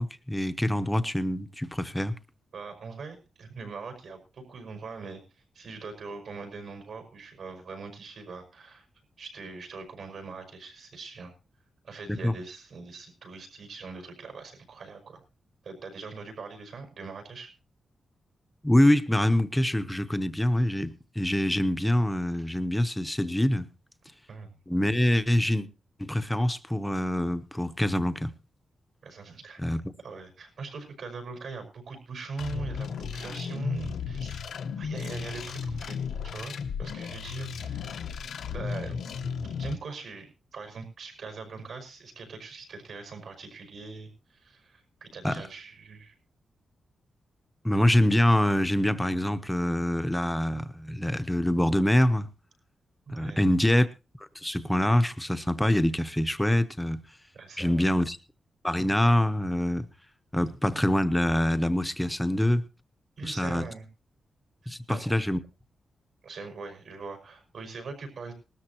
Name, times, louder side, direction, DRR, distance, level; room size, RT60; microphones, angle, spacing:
voice 1, 0.0-2.1 12.1-12.3 18.6-23.6 24.7-25.7 26.0-28.3 29.6-29.9 45.2-45.4 47.6-52.3 53.1-53.9 54.4-57.0 57.6-58.2 58.6-59.9 60.3-62.6 63.2-63.7 64.7-65.4, left 1 dB, 5° left, 0.8 m, -25 dB
voice 2, 2.5-5.2 5.5-8.9 9.2-11.3 11.8-15.2 15.6-17.5 24.3-24.5 29.0-29.6 30.0-34.4 34.8-36.0 36.2-38.0 38.5-39.2 39.6-46.1 53.1-53.4 57.3-57.9 63.2-63.9 64.9-65.1 66.2-68.3, right 4 dB, 65° right, 5.7 m, -41 dB
sound 1, 32.4-39.8, left 6 dB, 85° left, 1.0 m, -34 dB
20.0 x 13.0 x 3.0 m
wide cardioid pair, 155°, 0 cm